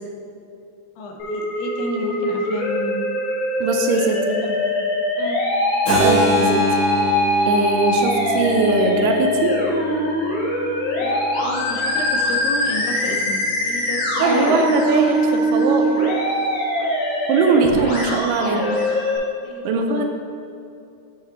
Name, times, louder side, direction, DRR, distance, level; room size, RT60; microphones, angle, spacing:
voice 1, 1.0-3.1 3.9-4.1 4.8-4.9 5.2-5.4 11.0-14.7 19.4-20.0, left 1 dB, 85° left, 2 dB, 2.5 m, -31 dB
Musical instrument, 1.2-19.2, left 1 dB, 65° left, 2.5 m, -22 dB
voice 2, 3.6-4.6 5.9-6.6 7.5-9.6 14.2-16.0 17.3-18.8 19.6-20.0, right 4 dB, 80° right, 3 dB, 2.2 m, -20 dB
Keyboard (musical), 5.9-11.7, equal, 45° left, 2.0 m, -26 dB
8.0 x 6.5 x 2.8 m, 2.6 s
omnidirectional pair, 4.0 m